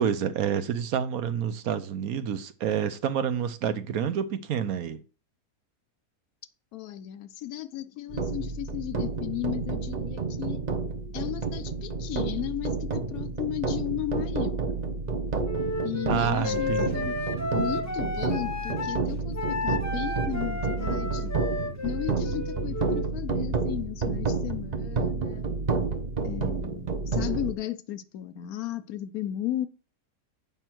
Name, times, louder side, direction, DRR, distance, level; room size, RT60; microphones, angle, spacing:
voice 1, 0.0-5.0 16.1-17.1, right 8 dB, 70° right, 1.1 m, -28 dB
voice 2, 6.7-10.6 11.1-14.7 15.8-17.2 17.5-21.3 21.8-25.5 26.2-29.7, left 14 dB, 70° left, 1.0 m, -34 dB
sound 1, 8.1-27.5, right 4 dB, 35° right, 0.7 m, -30 dB
Wind instrument woodwind instrument, 15.4-19.0 19.3-23.1, left 2 dB, 15° left, 0.6 m, -33 dB
8.2 x 5.6 x 4.5 m
omnidirectional pair, 1.7 m